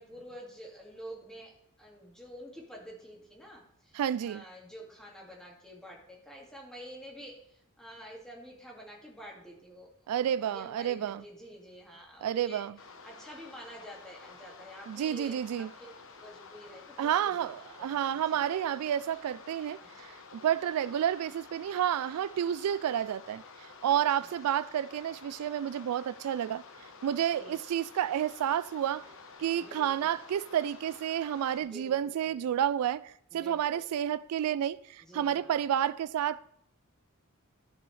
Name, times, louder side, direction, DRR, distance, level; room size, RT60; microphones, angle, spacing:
voice 1, 0.0-1.5 1.8-12.6 13.0-17.5 17.8-18.5 19.8-19.9 23.8-24.3 27.2-27.6 29.4-30.1 31.6-32.4 33.3-33.8 35.0-35.6, equal, 5° left, 2.1 m, -49 dB
voice 2, 3.9-4.4 10.1-11.2 12.2-12.7 14.9-15.7 17.0-23.4 23.8-26.6 27.0-29.1 29.4-36.4, right 10 dB, 90° right, 0.3 m, -30 dB
sound 1, 12.8-31.6, left 4 dB, 65° left, 1.0 m, -51 dB
13.5 x 6.1 x 3.2 m
head